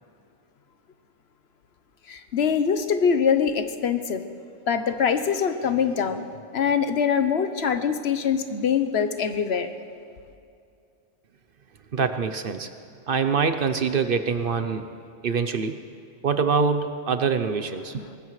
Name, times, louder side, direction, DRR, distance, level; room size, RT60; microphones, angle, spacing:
voice 1, 2.1-4.2 4.7-6.2 6.5-9.7, left 7 dB, 65° left, 9 dB, 1.0 m, -23 dB
voice 2, 11.9-12.7 13.1-14.8 15.2-15.8 16.2-18.0, right 5 dB, 55° right, 9 dB, 0.8 m, -24 dB
22.5 x 19.0 x 3.2 m, 2.4 s
omnidirectional pair, 1.2 m